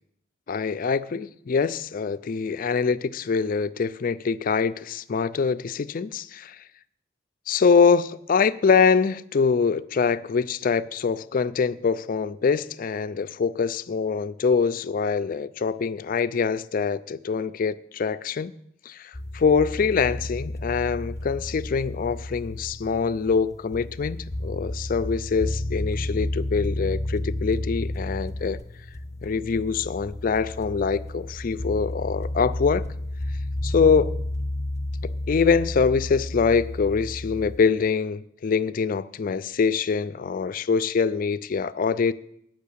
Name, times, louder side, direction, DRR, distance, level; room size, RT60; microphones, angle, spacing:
voice 1, 0.5-6.6 7.5-18.5 18.9-28.6 29.2-32.8 33.6-34.1 35.0-42.1, left 5 dB, 45° left, 0.4 m, -24 dB
sound 1, 19.1-37.6, left 1 dB, 15° left, 0.7 m, -32 dB
9.6 x 6.3 x 8.4 m
head